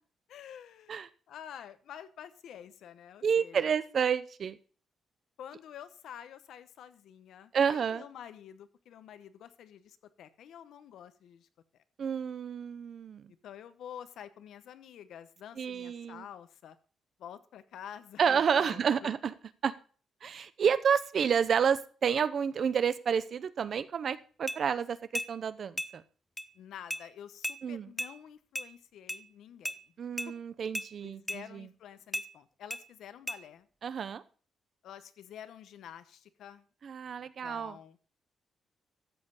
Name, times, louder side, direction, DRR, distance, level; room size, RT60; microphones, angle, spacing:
voice 1, 0.3-1.0 1.3-3.7 5.4-11.5 13.3-16.8 17.2-19.1 26.5-29.8 30.3-30.4 31.0-33.7 34.8-36.6 37.2-38.0, left 9 dB, 75° left, 12 dB, 0.9 m, -49 dB
voice 2, 3.2-4.6 7.5-8.0 12.0-13.3 15.6-16.2 18.2-19.3 19.6-19.7 20.2-26.0 27.6-27.9 30.0-31.7 33.8-34.2 36.8-37.8, right 7 dB, 40° right, 15 dB, 0.6 m, -30 dB
sound 1, 24.5-24.6 25.1-25.3 25.8-25.9 26.4-26.5 26.9-27.0 27.4-27.6 28.0-28.1 28.5-28.7 29.1-29.2 29.6-29.8 30.2-30.3 30.7-30.9 31.3-31.4 32.1-32.3 32.7-32.8 33.3-33.4, equal, ahead, 0.5 m, -35 dB
13.5 x 7.5 x 3.9 m, 0.40 s
cardioid pair, 180°, 0 cm